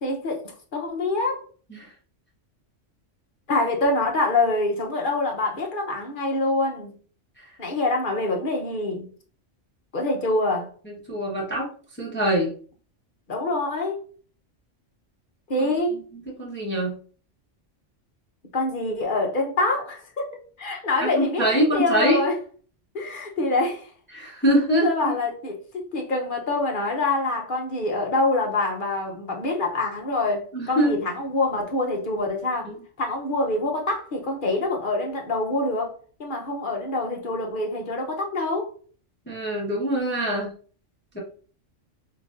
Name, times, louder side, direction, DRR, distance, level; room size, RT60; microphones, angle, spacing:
voice 1, 0.0-1.4 3.5-6.9 7.6-9.1 9.9-10.7 13.3-14.0 15.5-16.0 18.5-20.3 20.6-22.3 22.9-23.9 24.8-32.7 33.0-38.7, left 2 dB, 50° left, 0.9 m, -25 dB
voice 2, 10.9-11.7 12.0-12.5 15.6-15.7 15.9-17.0 21.0-22.2 24.1-25.1 30.5-31.0 32.6-32.7 39.3-40.5 41.1-41.2, right 1 dB, 10° left, 0.8 m, -24 dB
5.6 x 2.6 x 2.4 m
omnidirectional pair, 1.3 m